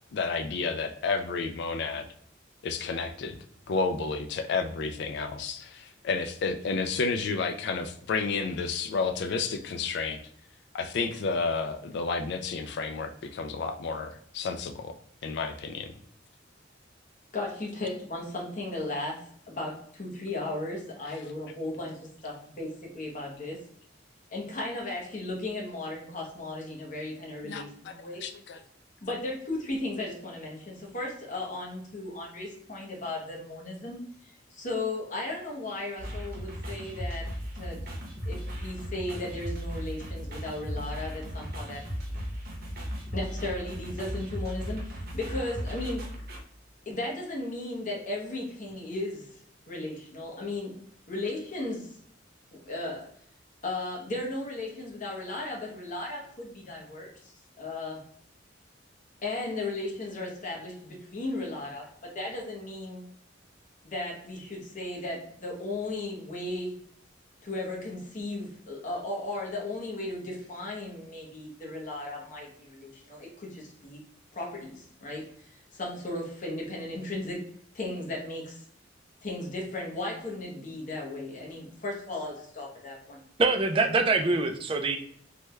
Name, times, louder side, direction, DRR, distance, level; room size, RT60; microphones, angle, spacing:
voice 1, 0.1-2.1 2.6-3.4 3.7-10.2 10.7-14.9 15.2-15.9 27.4-27.9 28.2-28.6, left 4 dB, 60° left, 7 dB, 0.3 m, -31 dB
voice 2, 17.3-23.6 24.3-28.2 29.0-34.0 34.5-37.3 37.6-38.0 38.3-41.8 42.8-46.1 46.9-49.3 49.7-50.8 51.1-52.0 52.5-53.1 53.6-57.3 57.6-58.0 59.2-63.0 63.8-66.8 67.4-74.0 74.3-77.4 77.7-78.6 79.2-83.2, left 2 dB, 40° left, -2 dB, 0.8 m, -36 dB
sound 1, 36.0-46.4, equal, 50° right, 0.8 m, -36 dB
voice 3, 83.4-85.0, right 3 dB, 30° right, 6 dB, 0.3 m, -24 dB
3.3 x 2.2 x 3.1 m, 0.64 s
head